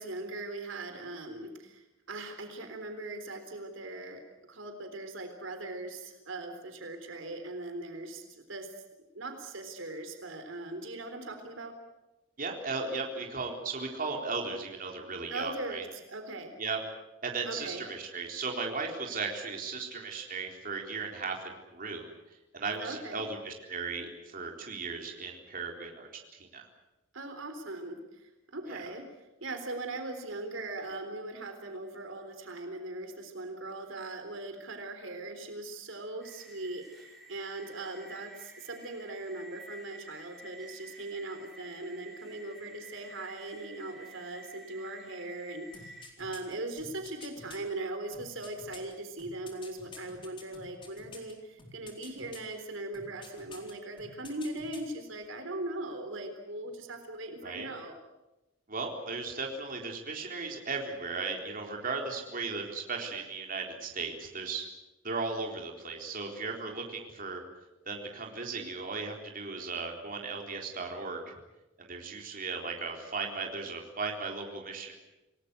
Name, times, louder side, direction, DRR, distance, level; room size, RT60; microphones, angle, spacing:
voice 1, 0.0-4.2 4.5-8.7 9.1-11.7 15.3-16.5 17.4-17.8 22.8-23.2 27.1-29.1 29.4-57.9, right 2 dB, 70° right, 6 dB, 3.8 m, -40 dB
voice 2, 12.4-15.8 16.6-16.8 17.2-21.4 21.7-22.1 22.5-26.7 28.7-28.8 57.4-57.7 58.7-64.7 65.0-67.4 67.9-71.3 71.8-74.9, right 4 dB, 40° right, 1 dB, 4.0 m, -36 dB
sound 1, 36.2-46.1, right 1 dB, ahead, 4.5 m, -51 dB
sound 2, 45.7-47.6 48.1-51.3 51.6-52.5 52.9-53.7 54.0-54.9 55.2-55.3, left 3 dB, 25° left, 4.2 m, -49 dB
28.0 x 19.5 x 8.3 m, 1.0 s
head